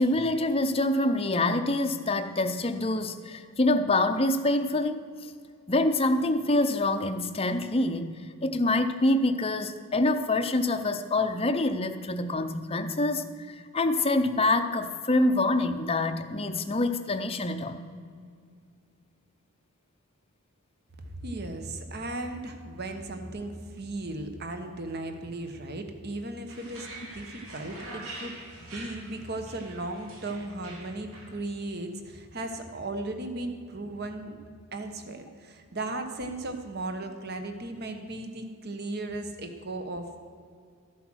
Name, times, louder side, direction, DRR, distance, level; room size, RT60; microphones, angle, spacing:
voice 1, 0.0-5.3 5.7-8.1 8.4-17.9, left 2 dB, 25° left, 8 dB, 0.6 m, -26 dB
voice 2, 21.1-26.9 27.1-34.4 34.7-40.2, right 2 dB, 45° right, 6 dB, 1.1 m, -36 dB
sound 1, 26.5-31.3, right 2 dB, 75° right, 2.6 m, -44 dB
14.0 x 8.0 x 6.3 m, 2.2 s
head